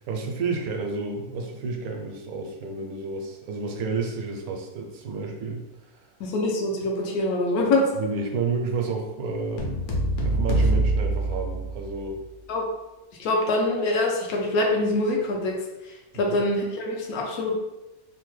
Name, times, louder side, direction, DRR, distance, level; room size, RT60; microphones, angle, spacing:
voice 1, 0.1-5.6 5.9-6.1 8.0-9.7 10.2-12.2 16.1-16.4, right 4 dB, 80° right, 1 dB, 1.0 m, -30 dB
voice 2, 6.2-7.9 12.5-12.6 13.2-15.6 15.8-17.5, left 2 dB, 80° left, 0 dB, 1.1 m, -24 dB
sound 1, 9.6-12.1, right 2 dB, 65° left, 0.8 m, -24 dB
3.1 x 2.1 x 3.1 m, 1.0 s
omnidirectional pair, 1.6 m